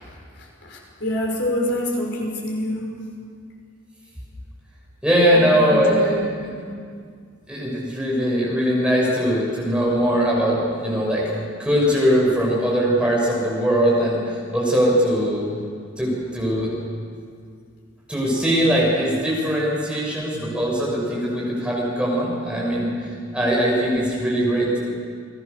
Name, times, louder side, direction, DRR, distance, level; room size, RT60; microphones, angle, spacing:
voice 1, 0.6-2.9 5.3-5.4 5.7-6.5, left 1 dB, 60° left, -1 dB, 5.8 m, -26 dB
voice 2, 5.0-6.2 6.4-6.5 7.5-11.3 11.6-15.5 16.0-16.8 18.1-24.8, equal, 5° right, -4 dB, 6.6 m, -21 dB
29.5 x 21.5 x 6.9 m, 2.1 s
head